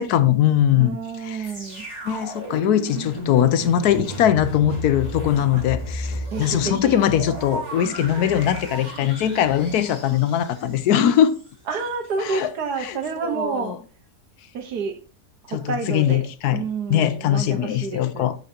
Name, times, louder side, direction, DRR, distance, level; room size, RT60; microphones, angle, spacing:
voice 1, 0.0-1.0 1.2-1.5 2.0-11.3 12.2-12.5 12.8-13.0 13.2-13.8 15.5-16.6 16.9-18.3, left 10 dB, 80° left, 1.2 m, -21 dB
voice 2, 0.8-1.9 5.5-5.6 6.3-7.0 11.7-13.8 14.5-15.0 15.4-16.2 16.5-18.3, right 5 dB, 80° right, 1.7 m, -29 dB
sound 1, 1.4-11.5 12.1-12.2, equal, 25° right, 3.1 m, -33 dB
12.5 x 4.8 x 2.8 m
omnidirectional pair, 1.7 m